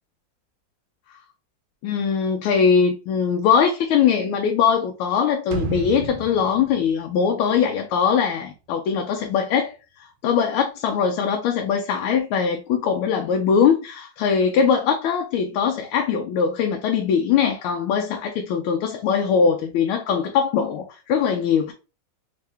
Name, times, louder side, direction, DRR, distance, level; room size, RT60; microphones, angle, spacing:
voice 1, 1.8-21.7, left 7 dB, 80° left, 1.4 m, -21 dB
sound 1, 5.5-8.3 8.6-8.7, right 5 dB, 80° right, 1.5 m, -33 dB
3.6 x 2.8 x 3.3 m
omnidirectional pair, 2.3 m